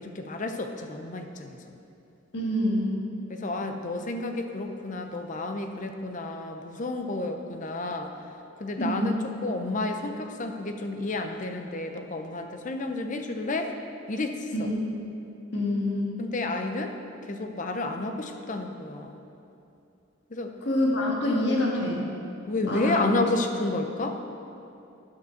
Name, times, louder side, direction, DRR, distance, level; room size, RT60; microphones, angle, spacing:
voice 1, 0.0-1.6 3.3-8.1 8.6-13.7 14.1-14.5 16.2-17.0 17.3-19.2 20.3-20.5 22.5-24.2, left 2 dB, 40° left, 5 dB, 0.6 m, -31 dB
voice 2, 2.3-2.9 8.8-9.2 14.5-14.8 15.5-16.2 20.6-22.1 22.6-23.1, left 1 dB, 55° left, -3 dB, 1.7 m, -26 dB
9.6 x 5.2 x 6.4 m, 2.7 s
head